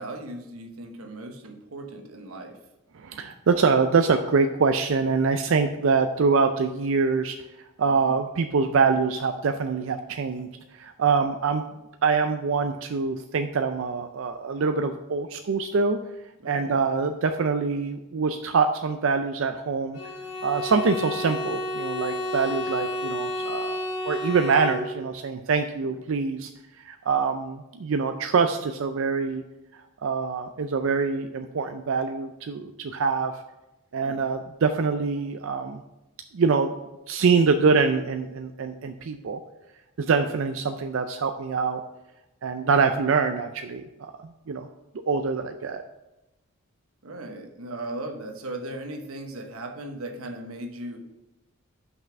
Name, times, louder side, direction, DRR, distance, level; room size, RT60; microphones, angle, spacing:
voice 1, 0.0-2.6 16.4-16.8 25.8-26.0 34.0-34.2 42.6-42.8 47.0-51.0, right 1 dB, 80° right, 4 dB, 1.1 m, -38 dB
voice 2, 2.9-7.4 7.8-10.5 10.7-11.6 12.0-16.0 16.4-20.0 20.4-26.5 26.8-29.4 30.0-33.4 33.9-35.8 36.3-36.7 37.1-39.4 40.0-41.8 42.4-44.7 45.1-45.8, right 5 dB, 60° right, 7 dB, 0.4 m, -24 dB
Bowed string instrument, 19.9-25.2, left 1 dB, 60° left, 2.0 m, -31 dB
5.8 x 5.5 x 5.9 m, 0.96 s
head